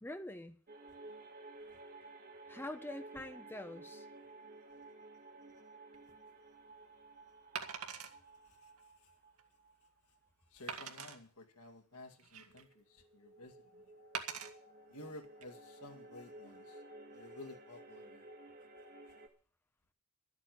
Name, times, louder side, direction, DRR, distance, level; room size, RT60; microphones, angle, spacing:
voice 1, 0.0-0.6 2.5-4.0, left 1 dB, 10° left, 0.9 m, -45 dB
sound 1, 0.7-9.9 10.2-10.3 12.5-19.3, right 2 dB, 45° right, 1.9 m, -55 dB
Wood, 5.9-6.1 7.5-8.1 8.8-8.9 9.4-9.5 10.7-11.2 11.9-12.7 14.1-14.5 15.2-15.4, right 7 dB, 80° right, 1.9 m, -43 dB
voice 2, 10.5-13.8 14.9-16.8 17.1-18.3, left 2 dB, 85° left, 2.2 m, -53 dB
12.5 x 8.5 x 9.4 m
head